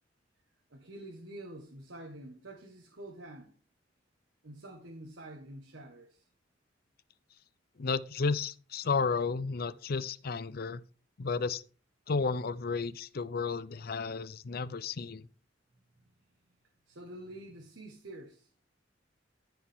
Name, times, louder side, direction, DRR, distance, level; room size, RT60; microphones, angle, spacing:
voice 1, 0.7-3.6 4.4-6.2 15.1-15.2 16.9-18.5, right 1 dB, 85° right, 1.5 m, -47 dB
voice 2, 7.8-10.8 11.2-11.6 12.1-15.2, left 4 dB, 55° left, 0.5 m, -32 dB
13.5 x 5.0 x 3.6 m
head